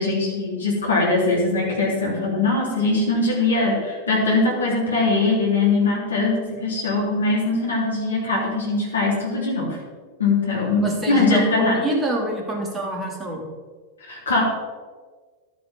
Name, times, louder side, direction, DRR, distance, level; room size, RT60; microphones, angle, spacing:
voice 1, 0.0-9.8 10.2-11.8 14.1-14.4, left 3 dB, 70° left, -3 dB, 3.5 m, -21 dB
voice 2, 10.8-13.5, right 1 dB, 20° right, 0 dB, 2.6 m, -26 dB
12.0 x 10.0 x 3.7 m, 1.5 s
figure-of-eight pair, 90°, 0 cm